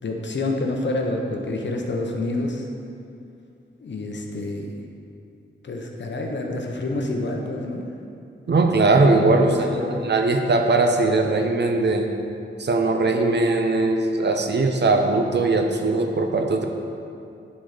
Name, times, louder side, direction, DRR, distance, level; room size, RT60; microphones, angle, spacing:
voice 1, 0.0-2.7 3.8-4.7 5.6-7.9 9.4-10.0, left 2 dB, 60° left, 2 dB, 0.9 m, -28 dB
voice 2, 8.5-9.5 10.0-12.1 12.6-16.6, right 3 dB, 60° right, 4 dB, 0.7 m, -20 dB
10.0 x 4.2 x 5.0 m, 2.5 s
wide cardioid pair, 115°, 21 cm